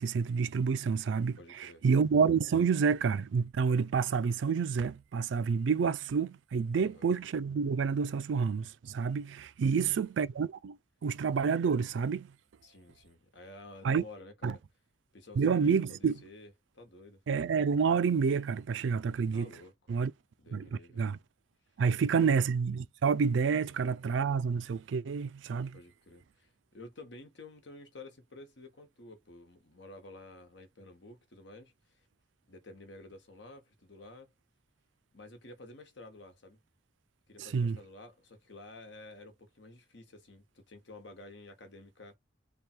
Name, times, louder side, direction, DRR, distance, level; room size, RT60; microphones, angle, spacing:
voice 1, 0.0-12.3 13.8-14.0 14.4-14.5 15.4-16.2 17.3-19.5 19.9-20.1 20.5-21.2 21.8-25.8 37.5-37.8, right 6 dB, 80° right, 0.4 m, -29 dB
voice 2, 1.4-1.8 6.7-7.1 9.6-10.0 12.6-14.6 15.1-17.2 19.3-20.0 20.4-21.1 22.1-22.4 23.6-23.7 25.7-32.1 32.5-34.3 35.1-36.6 37.3-42.2, left 2 dB, 70° left, 1.1 m, -51 dB
3.4 x 2.3 x 4.3 m
head